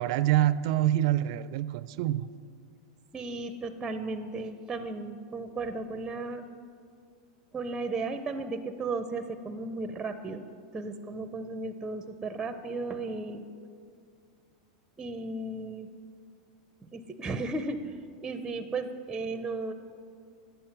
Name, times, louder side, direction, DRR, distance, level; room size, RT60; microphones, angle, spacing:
voice 1, 0.0-2.3, right 14 dB, 65° right, 16 dB, 0.4 m, -26 dB
voice 2, 3.1-6.4 7.5-10.5 10.7-13.4 15.0-15.9 16.8-17.8 18.2-19.7, right 3 dB, 15° right, 9 dB, 0.6 m, -35 dB
11.5 x 8.1 x 5.9 m, 2.3 s
supercardioid pair, 120°, 3 cm